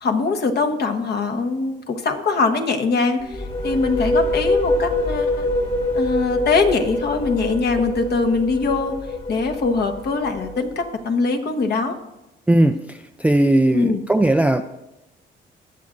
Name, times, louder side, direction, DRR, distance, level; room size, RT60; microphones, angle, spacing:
voice 1, 0.0-5.5 5.9-9.0 9.3-12.0 13.7-14.0, left 4 dB, 55° left, 6 dB, 1.2 m, -22 dB
sound 1, 3.2-10.8, left 1 dB, 30° left, 1.8 m, -24 dB
voice 2, 12.5-14.6, right 1 dB, 5° right, 8 dB, 0.4 m, -18 dB
20.0 x 7.4 x 2.6 m, 0.94 s
cardioid pair, 90°, 20 cm